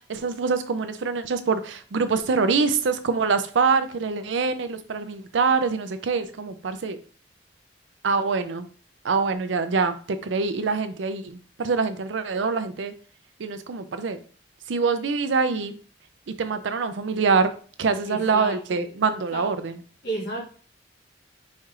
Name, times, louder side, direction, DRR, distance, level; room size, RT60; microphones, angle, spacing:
voice 1, 0.1-7.0 8.0-8.7 9.0-10.0 10.2-12.9 13.4-14.2 14.7-15.8 16.3-17.5 17.8-19.8, right 4 dB, 90° right, 10 dB, 0.5 m, -24 dB
voice 2, 18.1-18.8 19.3-19.5 20.0-20.5, right 2 dB, 70° left, -4 dB, 1.8 m, -32 dB
4.3 x 2.4 x 4.7 m, 0.42 s
head